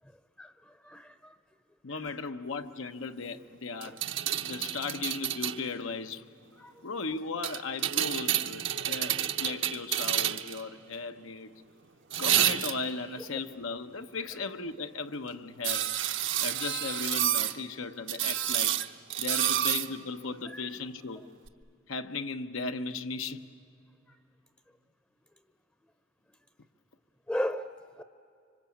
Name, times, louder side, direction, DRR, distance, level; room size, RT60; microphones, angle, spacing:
voice 1, 0.4-1.3 2.0-2.1 3.8-3.9 6.6-6.7 20.5-20.7 24.1-24.2 27.3-28.0, equal, 5° left, 0.7 m, -36 dB
voice 2, 1.8-4.0 4.4-6.2 6.8-11.5 12.2-15.9 16.4-18.8 19.2-21.2 21.9-23.4, left 4 dB, 85° left, 0.9 m, -36 dB
Spring metal grind squeak, 3.8-5.6 7.4-10.6 12.1-13.0 15.6-17.6 18.1-19.9 21.5-21.6, right 11 dB, 70° right, 0.9 m, -29 dB
26.0 x 25.0 x 8.6 m
head